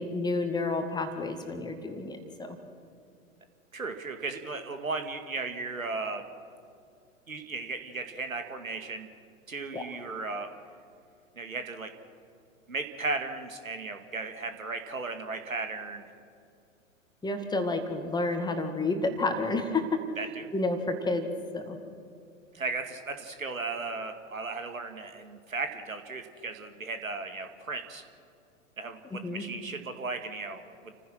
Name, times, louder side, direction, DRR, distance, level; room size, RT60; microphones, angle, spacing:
voice 1, 0.0-2.6 9.7-9.8 17.2-19.8 20.5-21.3 21.5-21.8 29.1-29.4, left 2 dB, 10° left, 5 dB, 2.1 m, -30 dB
voice 2, 3.7-6.2 7.3-9.1 9.5-10.5 11.4-11.9 12.7-16.1 20.2-20.5 22.5-28.0 28.8-30.9, right 3 dB, 80° right, 7 dB, 2.1 m, -36 dB
29.5 x 15.5 x 6.2 m, 2.5 s
figure-of-eight pair, 100°, 40 cm